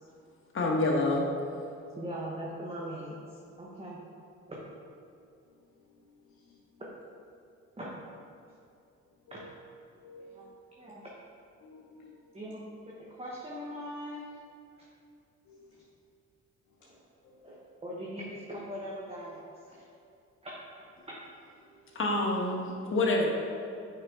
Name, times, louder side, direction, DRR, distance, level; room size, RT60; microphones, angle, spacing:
voice 1, 0.5-1.3 21.9-23.3, left 2 dB, 45° left, -1 dB, 1.3 m, -27 dB
voice 2, 2.0-3.2 3.6-4.0 4.5-4.6 7.8-8.0 9.3-9.4 10.3-10.5 10.8-11.1 12.3-14.3 16.8-17.0 17.4-19.4 19.7-19.8 20.4-20.6 21.1-21.2, equal, 20° right, -5 dB, 1.0 m, -40 dB
voice 3, 5.5-6.8 9.1-9.5 10.0-11.0 11.6-12.4 15.5-15.9 16.8-16.9 17.2-17.6, left 2 dB, 75° left, -3 dB, 0.9 m, -55 dB
6.3 x 4.9 x 3.7 m, 2.6 s
cardioid pair, 90°, 30 cm